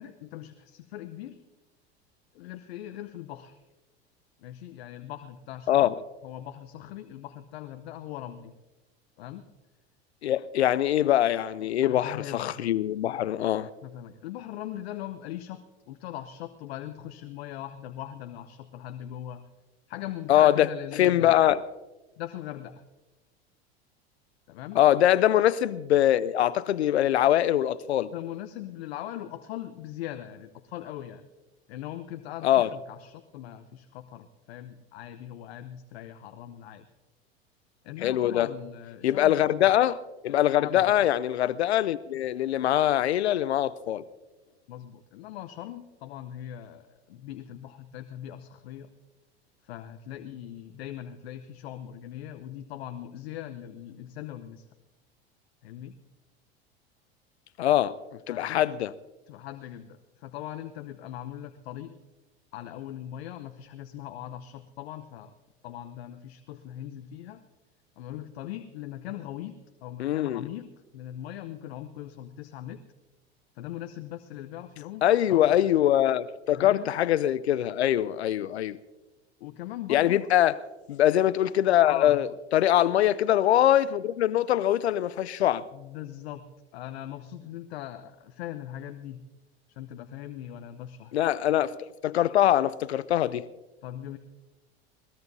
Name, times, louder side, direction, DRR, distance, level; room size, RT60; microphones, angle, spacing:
voice 1, 0.0-1.4 2.3-3.6 4.4-5.9 6.2-8.5 9.2-9.4 11.6-12.5 13.8-19.5 19.9-21.4 22.2-22.8 24.5-24.8 28.1-31.3 31.7-36.9 37.8-39.7 40.6-41.0 44.7-48.9 49.6-54.7 55.6-55.9 58.3-58.6 59.3-62.0 62.5-65.3 65.6-67.4 68.0-72.8 73.5-75.6 76.5-76.9 79.4-80.3 81.9-82.2 85.7-86.4 86.7-89.2 89.7-91.1 93.8-94.2, left 12 dB, 70° left, 0.9 m, -40 dB
voice 2, 10.2-13.7 20.3-20.7 21.0-21.6 24.8-28.1 32.4-32.7 38.0-38.5 39.0-40.0 40.2-44.0 57.6-58.0 58.3-58.9 70.0-70.4 75.0-78.8 79.9-80.6 80.9-85.6 91.1-91.8 92.0-93.4, left 12 dB, 85° left, 0.5 m, -23 dB
21.0 x 19.0 x 2.7 m
hypercardioid pair, 85°, 32 cm